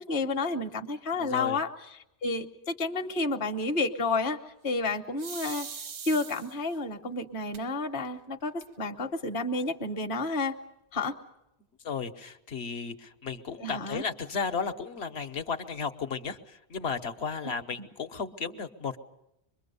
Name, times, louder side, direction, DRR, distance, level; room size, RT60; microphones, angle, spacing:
voice 1, 0.0-1.7 2.2-4.4 4.6-5.7 6.0-10.6 10.9-11.2 13.6-14.0 17.8-17.9, left 3 dB, 50° left, 4 dB, 1.2 m, -30 dB
voice 2, 1.1-1.6 11.8-19.0, left 5 dB, 70° left, 7 dB, 1.3 m, -34 dB
sound 1, 5.2-6.8 7.5-7.6 8.0-8.1 8.4-9.0, right 6 dB, 90° right, 1.3 m, -41 dB
25.0 x 22.0 x 6.8 m, 0.86 s
omnidirectional pair, 1.1 m